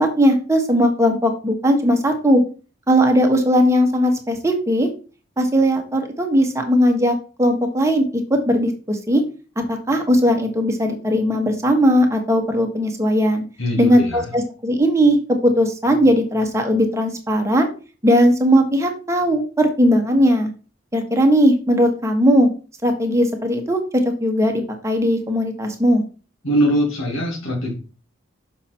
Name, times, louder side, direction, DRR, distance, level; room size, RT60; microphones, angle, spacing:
voice 1, 0.0-2.4 2.9-4.9 5.4-9.2 9.7-13.4 13.8-17.7 18.0-20.5 20.9-22.5 22.8-23.8 24.2-26.0, equal, 15° right, 3 dB, 1.3 m, -18 dB
voice 2, 13.6-14.3 26.4-27.7, equal, 90° left, -1 dB, 2.5 m, -22 dB
6.9 x 5.5 x 4.4 m, 0.36 s
head